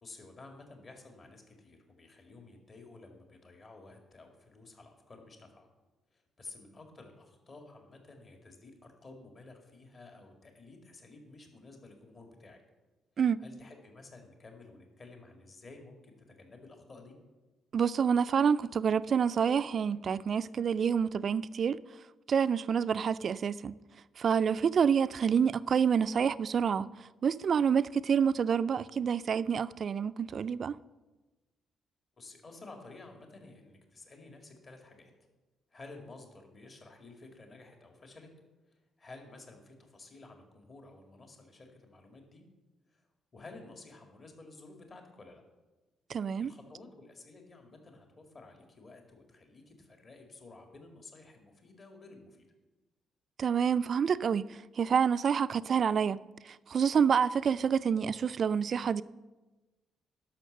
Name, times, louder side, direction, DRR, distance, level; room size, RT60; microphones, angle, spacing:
voice 1, 0.0-5.7 6.1-12.6 13.4-17.2 32.2-35.1 35.7-38.3 38.7-42.4 42.9-43.0 43.3-45.4 46.4-52.4, left 3 dB, 40° left, 2.1 m, -52 dB
voice 2, 17.7-21.8 22.3-23.8 24.2-26.9 27.2-30.8 46.1-46.5 53.4-56.2 56.4-59.0, right 7 dB, 50° right, 0.3 m, -28 dB
11.5 x 6.0 x 6.6 m
cardioid pair, 90°, 0 cm